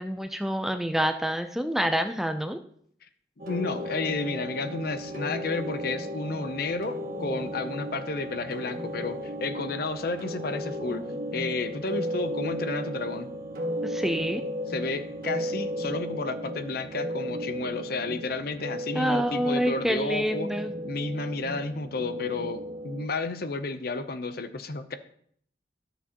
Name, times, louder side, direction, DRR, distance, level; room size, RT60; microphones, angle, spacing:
voice 1, 0.0-2.6 13.8-14.4 18.9-20.7, equal, ahead, 7 dB, 0.4 m, -27 dB
sound 1, 3.4-23.1, equal, 55° right, 1.5 m, -35 dB
voice 2, 3.5-11.0 11.3-13.3 14.7-20.5 20.8-25.0, left 3 dB, 55° left, 10 dB, 0.7 m, -32 dB
12.5 x 6.9 x 2.9 m, 0.65 s
head